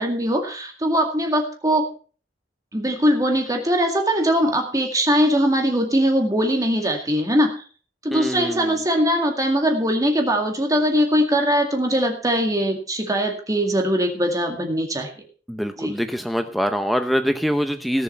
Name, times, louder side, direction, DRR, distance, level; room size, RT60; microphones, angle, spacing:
voice 1, 0.0-1.9 2.7-7.6 8.0-15.1 15.8-15.9, equal, 20° right, 3 dB, 2.1 m, -21 dB
voice 2, 8.1-8.7 15.5-18.0, equal, ahead, 7 dB, 0.7 m, -24 dB
17.5 x 7.6 x 5.6 m, 0.40 s
head